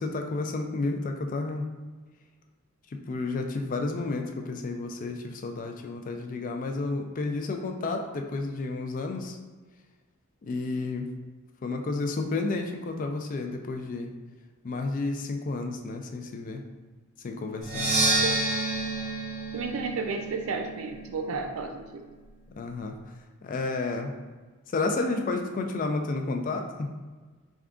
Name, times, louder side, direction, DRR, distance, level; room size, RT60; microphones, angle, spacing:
voice 1, 0.0-1.6 2.9-9.4 10.4-11.1 11.6-14.1 14.6-16.6 17.2-17.9 22.6-23.0 23.4-24.1 24.7-26.9, left 3 dB, 35° left, 4 dB, 0.3 m, -31 dB
Percussion, 17.6-21.4, right 2 dB, 45° right, 0.9 m, -29 dB
voice 2, 19.5-21.8, right 4 dB, 70° right, 6 dB, 0.4 m, -32 dB
3.6 x 3.6 x 2.4 m, 1.3 s
head